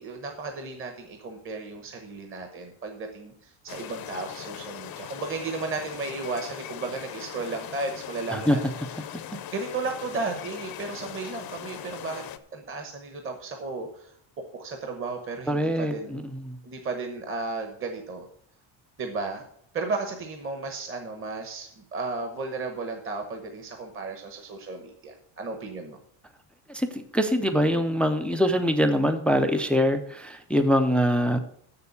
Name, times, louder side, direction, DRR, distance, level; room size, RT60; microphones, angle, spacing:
voice 1, 0.0-8.6 9.5-12.2 12.5-14.1 14.4-16.2 16.6-18.2 19.0-19.4 19.7-26.0, right 3 dB, 25° right, 5 dB, 1.0 m, -34 dB
sound 1, 3.7-12.4, left 11 dB, 45° left, 0.7 m, -40 dB
voice 2, 15.5-16.6 26.7-31.4, equal, 5° left, 9 dB, 0.4 m, -24 dB
7.5 x 6.9 x 8.2 m, 0.66 s
cardioid pair, 165°, 49 cm